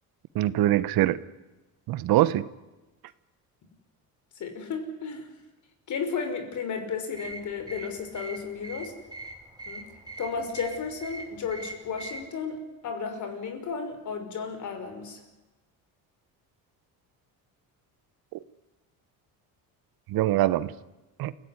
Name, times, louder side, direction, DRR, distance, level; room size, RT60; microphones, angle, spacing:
voice 1, 0.3-1.2 1.9-2.5 18.3-18.4 20.1-20.7 21.2-21.3, right 14 dB, 70° right, 16 dB, 1.2 m, -23 dB
voice 2, 4.4-5.3 5.9-8.9 9.7-9.9 10.2-15.2, left 5 dB, 50° left, 7 dB, 5.4 m, -33 dB
sound 1, 7.1-12.3, right 2 dB, 10° right, 4.6 m, -42 dB
28.5 x 16.0 x 9.9 m, 1.1 s
cardioid pair, 120°, 37 cm